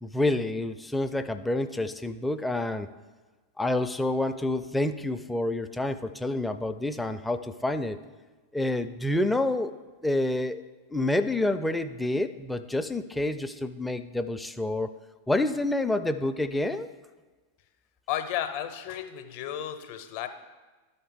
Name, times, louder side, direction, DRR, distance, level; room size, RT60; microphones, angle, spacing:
voice 1, 0.0-2.9 3.6-8.0 8.5-9.7 10.0-10.6 10.9-14.9 15.3-16.9, left 2 dB, 5° left, 9 dB, 0.4 m, -28 dB
voice 2, 18.1-20.3, left 10 dB, 45° left, 9 dB, 0.6 m, -33 dB
12.5 x 4.3 x 3.6 m, 1.3 s
figure-of-eight pair, 90°, 0 cm